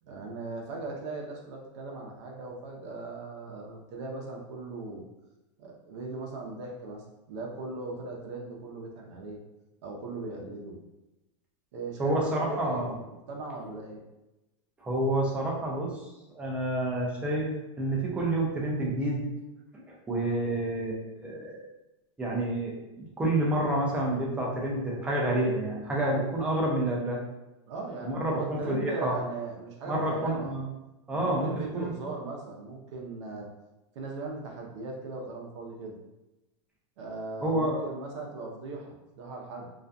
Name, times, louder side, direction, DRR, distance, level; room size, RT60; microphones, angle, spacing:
voice 1, 0.1-5.0 5.6-9.4 9.8-10.8 11.7-14.0 27.7-30.6 31.1-33.5 33.9-35.9 37.0-39.7, right 3 dB, 65° right, 0 dB, 0.6 m, -38 dB
voice 2, 12.0-12.9 14.8-16.0 16.3-17.5 17.8-19.2 20.1-21.6 22.2-27.2 28.0-29.1 29.9-30.7 31.1-31.9 37.4-37.8, right 1 dB, 5° right, -3 dB, 0.4 m, -29 dB
2.4 x 2.2 x 2.5 m, 0.98 s
supercardioid pair, 155°, 17 cm